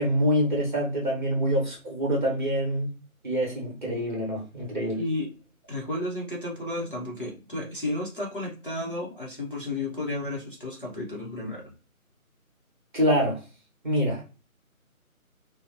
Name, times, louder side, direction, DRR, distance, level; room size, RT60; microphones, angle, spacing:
voice 1, 0.0-2.9 3.2-5.0 12.9-13.4 13.8-14.2, equal, 35° right, 1.0 m, -25 dB
voice 2, 5.0-5.3 5.7-11.7, left 2 dB, 40° left, 0.6 m, -32 dB
2.7 x 2.0 x 2.6 m
figure-of-eight pair, 170°, 43 cm